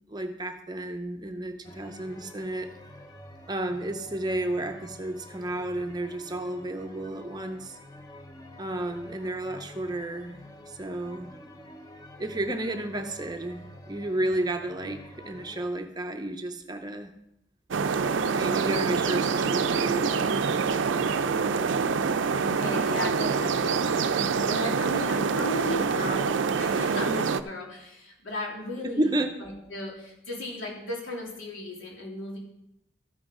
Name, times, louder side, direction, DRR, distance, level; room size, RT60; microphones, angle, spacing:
voice 1, 0.1-2.8 3.5-7.8 8.6-10.4 10.7-11.3 12.2-17.1 18.3-20.7 28.8-29.4, right 1 dB, 20° right, 6 dB, 0.6 m, -32 dB
sound 1, 1.6-15.7, left 1 dB, 20° left, 0.8 m, -48 dB
sound 2, 17.7-27.4, right 5 dB, 75° right, 0.4 m, -26 dB
voice 2, 22.4-29.1 29.4-32.4, left 1 dB, 85° left, -3 dB, 3.0 m, -35 dB
13.5 x 6.3 x 4.8 m, 0.84 s
head